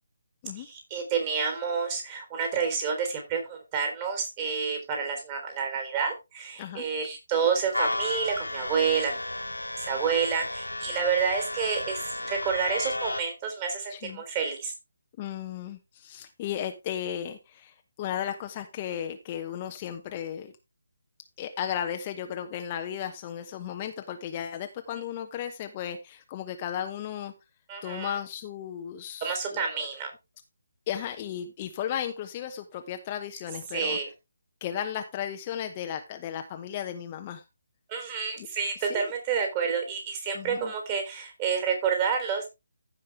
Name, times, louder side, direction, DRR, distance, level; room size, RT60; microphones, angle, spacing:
voice 1, 0.6-9.2 9.8-14.7 27.7-28.2 29.2-30.1 33.7-34.1 37.9-42.5, right 6 dB, 25° right, 3 dB, 3.7 m, -29 dB
sound 1, 7.7-13.2, left 1 dB, 85° left, 0.9 m, -33 dB
voice 2, 13.9-14.2 15.2-20.5 21.4-27.3 27.8-29.4 30.9-34.0 34.6-37.4 38.4-38.5 38.9-39.1 40.3-40.7, left 9 dB, 25° left, 6 dB, 1.0 m, -35 dB
15.0 x 5.4 x 3.4 m, 0.24 s
figure-of-eight pair, 145°, 0 cm